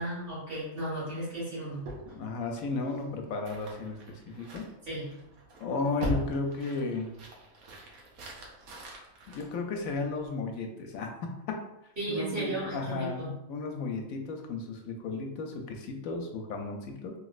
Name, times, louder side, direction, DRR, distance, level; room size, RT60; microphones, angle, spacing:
voice 1, 0.0-1.9 4.9-5.1 12.0-13.3, right 1 dB, 40° right, -7 dB, 1.7 m, -34 dB
sound 1, 1.8-10.3, right 1 dB, 85° right, 1.1 m, -42 dB
voice 2, 2.1-4.0 4.3-4.6 5.6-7.1 9.3-11.4 12.1-17.1, left 3 dB, 80° left, 3 dB, 1.0 m, -34 dB
3.1 x 3.0 x 2.4 m, 0.85 s
omnidirectional pair, 1.5 m